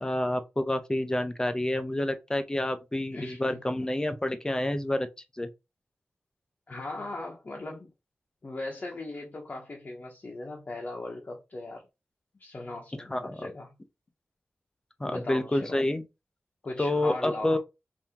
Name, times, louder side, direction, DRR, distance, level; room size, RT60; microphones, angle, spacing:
voice 1, 0.0-5.1 5.4-5.5 13.1-13.4 15.0-16.0 16.8-17.6, left 1 dB, 15° left, 0.5 m, -28 dB
voice 2, 3.1-3.6 6.7-7.9 8.4-11.9 12.4-13.7 15.0-15.8 16.6-17.6, left 2 dB, 40° left, 0.8 m, -38 dB
3.6 x 2.7 x 2.8 m
wide cardioid pair, 130°, 5 cm